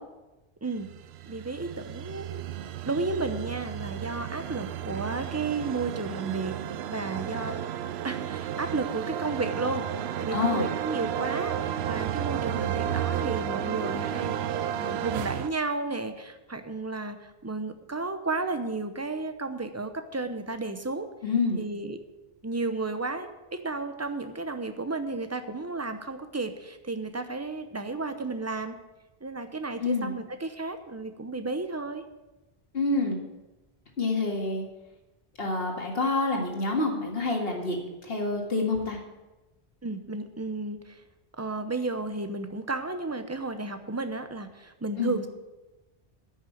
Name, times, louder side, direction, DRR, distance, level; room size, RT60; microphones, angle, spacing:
voice 1, 0.6-0.9 1.3-2.4 2.8-6.6 6.9-7.6 8.0-21.1 21.6-22.0 22.4-28.8 29.2-32.0 39.8-41.0 41.4-45.3, right 3 dB, 15° right, 9 dB, 0.7 m, -33 dB
sound 1, 0.8-15.5, right 10 dB, 85° right, 0.8 m, -32 dB
voice 2, 10.3-10.7 21.2-21.7 29.8-30.1 32.7-33.2 34.0-34.6 35.4-39.0 45.0-45.1, left 3 dB, 70° left, 1 dB, 2.2 m, -27 dB
9.8 x 6.3 x 8.5 m, 1.1 s
omnidirectional pair, 1.0 m